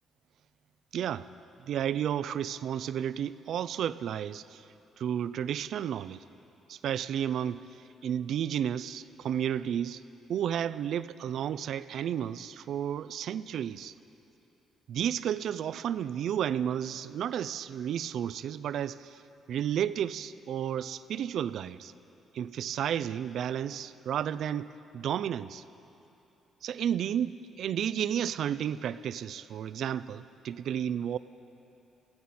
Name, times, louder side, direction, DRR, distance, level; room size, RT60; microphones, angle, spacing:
voice 1, 0.9-1.3 1.7-4.6 5.0-6.2 6.7-7.6 8.0-10.0 10.3-13.9 14.9-19.1 19.5-21.9 22.3-25.6 26.6-31.2, right 9 dB, 70° right, 15 dB, 0.4 m, -32 dB
21.5 x 15.0 x 4.3 m, 2.8 s
cardioid pair, 90°, 0 cm